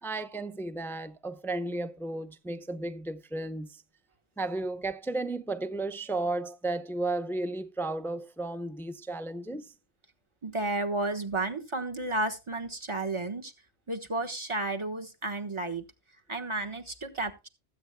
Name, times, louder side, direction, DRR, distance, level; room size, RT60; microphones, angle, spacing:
voice 1, 0.0-3.8 4.4-9.7, right 2 dB, 5° left, 0.4 m, -34 dB
voice 2, 10.4-13.5 13.9-15.8 16.3-17.5, right 2 dB, 25° right, 1.3 m, -32 dB
20.0 x 8.4 x 2.2 m
omnidirectional pair, 1.1 m